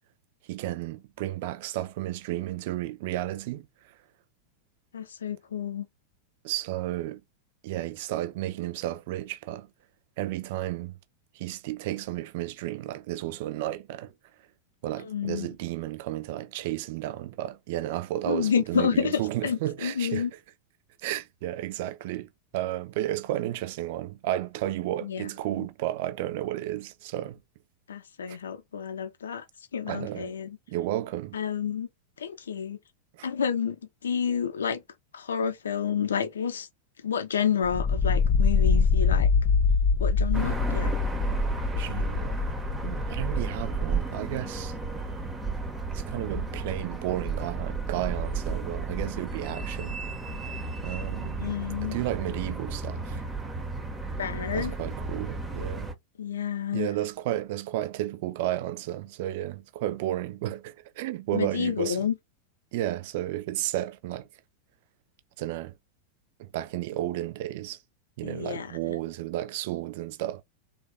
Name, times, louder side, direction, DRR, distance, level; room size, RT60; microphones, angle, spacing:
voice 1, 0.5-3.7 6.4-7.2 7.6-9.7 10.2-11.0 11.3-14.1 14.8-20.3 21.0-27.4 28.3-28.4 29.9-30.3 30.7-31.4 33.2-33.3 41.7-42.4 42.8-44.7 45.9-50.0 50.8-51.5 51.8-53.2 54.5-55.9 56.7-62.1 62.7-64.3 65.4-65.7 66.4-67.8 68.2-70.4, right 14 dB, 50° right, 0.6 m, -32 dB
voice 2, 4.9-5.9 15.0-15.5 18.3-20.3 25.0-25.3 25.6-25.7 27.9-29.4 29.7-30.6 31.3-31.9 32.2-32.8 33.2-33.8 34.0-34.8 35.1-36.7 37.0-39.3 40.0-41.0 51.4-52.0 54.2-54.7 56.2-56.9 61.3-62.2 68.2-69.0, left 7 dB, 70° left, 0.6 m, -29 dB
sound 1, 37.6-43.7, left 5 dB, 30° left, 0.4 m, -24 dB
sound 2, 40.3-55.9, right 3 dB, 15° right, 0.8 m, -33 dB
3.4 x 2.5 x 3.4 m
figure-of-eight pair, 90°, 0 cm